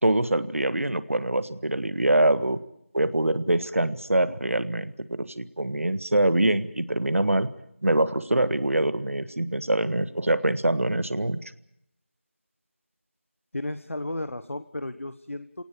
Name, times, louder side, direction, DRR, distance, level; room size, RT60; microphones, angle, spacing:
voice 1, 0.0-2.6 2.9-7.5 7.8-11.4, right 1 dB, 80° right, 14 dB, 1.7 m, -24 dB
voice 2, 13.5-15.6, left 1 dB, 70° left, 11 dB, 1.3 m, -33 dB
26.5 x 18.0 x 7.1 m, 0.73 s
figure-of-eight pair, 180°, 7 cm